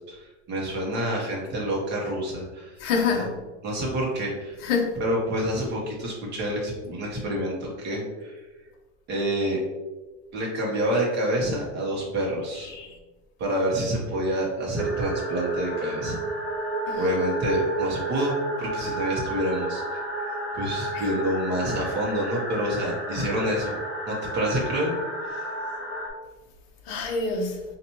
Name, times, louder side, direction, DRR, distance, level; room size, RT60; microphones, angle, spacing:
voice 1, 0.0-2.7 3.1-3.3 3.6-4.6 4.9-8.4 9.1-9.6 10.3-12.7 13.4-16.2 17.0-20.0 20.5-23.7 24.1-25.0 25.2-25.4, equal, 30° right, 1.0 m, -28 dB
voice 2, 2.8-3.4 4.6-5.0 12.6-13.0 16.9-17.0 20.9-21.0 26.9-27.6, left 4 dB, 45° left, 0.7 m, -27 dB
sound 1, 14.8-26.1, right 2 dB, ahead, 0.4 m, -31 dB
4.1 x 2.5 x 2.9 m
supercardioid pair, 160°, 37 cm